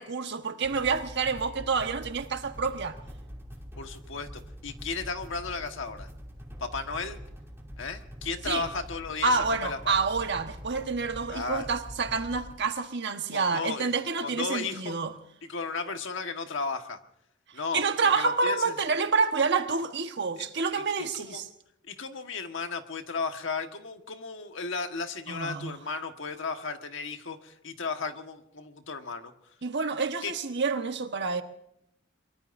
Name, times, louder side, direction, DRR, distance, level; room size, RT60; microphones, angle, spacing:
voice 1, 0.0-3.0 8.5-8.7 9.2-15.1 17.7-21.4 25.3-25.8 29.6-31.4, right 4 dB, 60° right, 1.3 m, -28 dB
sound 1, 0.6-12.5, equal, 10° right, 2.7 m, -44 dB
voice 2, 3.8-6.1 6.6-7.2 7.8-10.1 11.3-11.7 13.3-13.9 14.2-14.9 15.4-17.0 17.5-18.7 20.7-21.4 21.9-29.3 30.2-30.3, left 4 dB, 65° left, 1.5 m, -35 dB
23.5 x 23.0 x 2.7 m
head